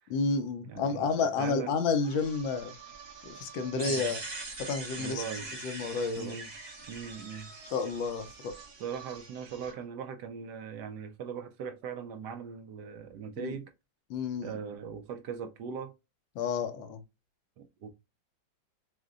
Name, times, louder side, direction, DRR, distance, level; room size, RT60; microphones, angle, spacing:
voice 1, 0.1-2.7 3.2-4.2 4.6-5.2 5.6-6.4 7.7-8.5 13.4-13.6 14.1-14.6 16.4-17.0, left 4 dB, 80° left, 1.4 m, -31 dB
voice 2, 0.6-1.1 1.4-1.7 3.7-4.1 5.0-5.5 6.2-6.5 6.9-7.5 8.8-13.7 14.4-15.9 17.6-17.9, right 6 dB, 75° right, 1.0 m, -40 dB
sound 1, 2.0-9.8, right 5 dB, 55° right, 1.7 m, -51 dB
sound 2, 3.8-8.6, right 3 dB, 40° right, 0.8 m, -42 dB
6.4 x 2.1 x 2.4 m
omnidirectional pair, 2.1 m